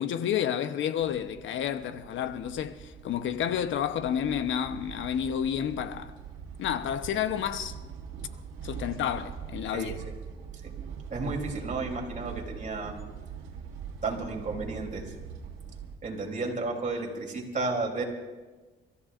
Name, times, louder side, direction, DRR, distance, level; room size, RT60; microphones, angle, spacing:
voice 1, 0.0-6.1 6.6-7.7 8.6-10.0, left 9 dB, 75° left, 1.0 m, -30 dB
sound 1, 1.0-16.0, right 7 dB, 90° right, 1.9 m, -42 dB
voice 2, 9.7-10.1 11.1-12.9 14.0-15.0 16.0-18.0, right 3 dB, 40° right, 3.4 m, -32 dB
29.5 x 14.5 x 2.6 m
cardioid pair, 90°, 20 cm